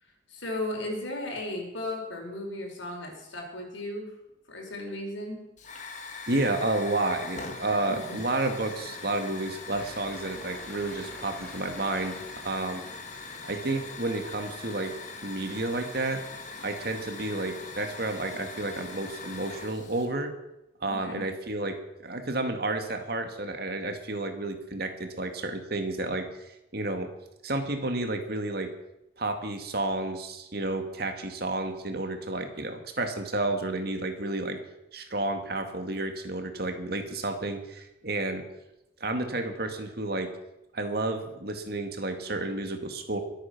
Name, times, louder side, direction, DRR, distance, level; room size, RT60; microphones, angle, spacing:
voice 1, 0.3-4.1 4.5-5.4 7.9-8.2 20.9-21.2, left 1 dB, 80° left, 1 dB, 4.7 m, -35 dB
Hiss / Fire, 5.6-20.1, left 4 dB, 40° left, 2.0 m, -42 dB
voice 2, 6.3-12.8 13.5-14.9 15.2-16.2 16.6-20.3 20.8-21.8 22.0-26.3 26.7-27.1 27.4-28.7 29.2-34.6 34.9-38.4 39.0-40.3 40.7-43.2, right 2 dB, 55° right, 6 dB, 2.0 m, -31 dB
sound 1, 9.7-14.7, equal, 5° left, 1.8 m, -50 dB
23.0 x 8.9 x 6.0 m, 0.90 s
head